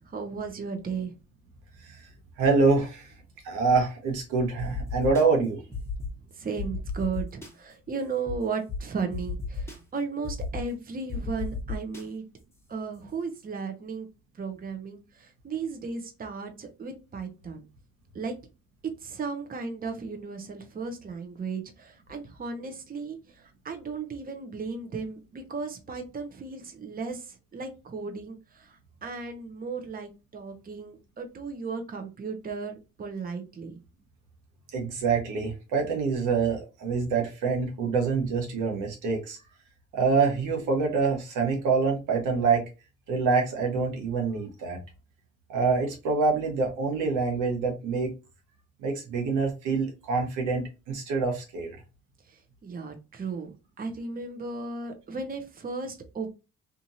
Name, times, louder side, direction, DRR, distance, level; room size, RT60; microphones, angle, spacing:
voice 1, 0.1-1.1 6.4-12.2 12.7-14.1 14.4-17.6 18.1-18.3 19.0-32.7 33.0-33.8 52.3-56.3, right 4 dB, 30° right, 0.7 m, -35 dB
voice 2, 2.4-3.1 3.4-5.6 34.7-39.4 39.9-42.7 43.1-44.8 45.5-48.1 48.8-51.8, right 4 dB, 90° right, 1.1 m, -26 dB
sound 1, 4.6-5.2 5.7-6.1 6.6-7.5 8.3-8.4 8.7-8.8 9.1-9.8 10.2-10.6 11.1-12.0, left 5 dB, 10° left, 1.0 m, -33 dB
2.9 x 2.5 x 2.6 m
cardioid pair, 90°, 30 cm